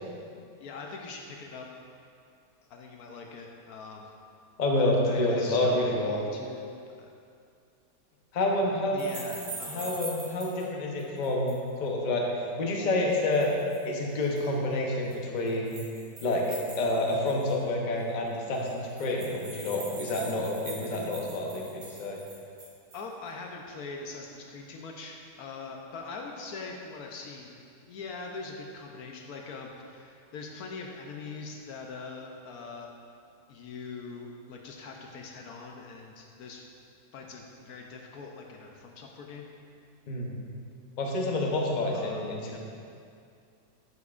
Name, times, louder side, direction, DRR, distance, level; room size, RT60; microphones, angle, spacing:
voice 1, 0.6-1.7 2.7-4.1 5.1-7.1 8.9-10.0 22.9-27.6 27.9-32.9 33.5-36.7 37.1-39.4 41.9-42.6, left 4 dB, 70° left, 1 dB, 1.0 m, -42 dB
voice 2, 4.6-6.2 8.3-9.0 9.7-13.5 13.8-15.7 16.2-22.2 40.1-40.3 41.0-42.6, left 1 dB, 40° left, -1 dB, 0.6 m, -28 dB
sound 1, 9.0-10.6 11.0-11.7 13.1-13.8 14.2-14.5 15.1-17.6 18.0-18.1 18.3-18.4 18.5-23.1, right 3 dB, 85° right, 2.1 m, -43 dB
8.1 x 7.0 x 2.4 m, 2.4 s
omnidirectional pair, 1.8 m